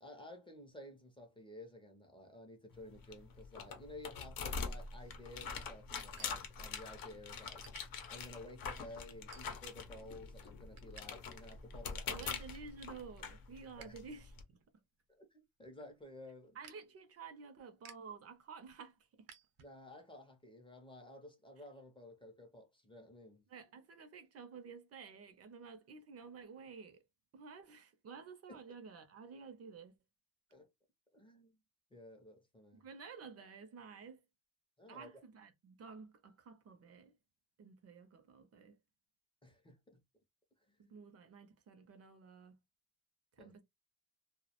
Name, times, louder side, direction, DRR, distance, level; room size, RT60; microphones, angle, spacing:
voice 1, 0.0-7.6 8.1-12.3 13.8-14.0 15.2-16.6 19.6-23.4 28.5-28.6 30.5-30.7 31.1-31.6 31.9-32.8 34.8-35.2 39.4-40.0 40.7-40.8 43.4-43.5, left 1 dB, 15° left, 0.4 m, -54 dB
sound 1, 2.7-14.4, left 5 dB, 80° left, 0.7 m, -45 dB
sound 2, 5.1-7.1 7.6-7.8 8.4-8.6 9.3-9.9 10.2-11.1 11.3-11.4 11.8-12.5 12.9-14.0 14.3-20.0, right 8 dB, 90° right, 0.6 m, -60 dB
voice 2, 12.1-14.6 16.5-19.3 23.5-27.0 27.3-29.9 32.7-34.2 34.9-37.1 37.6-38.8 40.8-42.6 43.4-43.6, right 5 dB, 45° right, 0.4 m, -52 dB
2.2 x 2.0 x 2.8 m
cardioid pair, 160°, 34 cm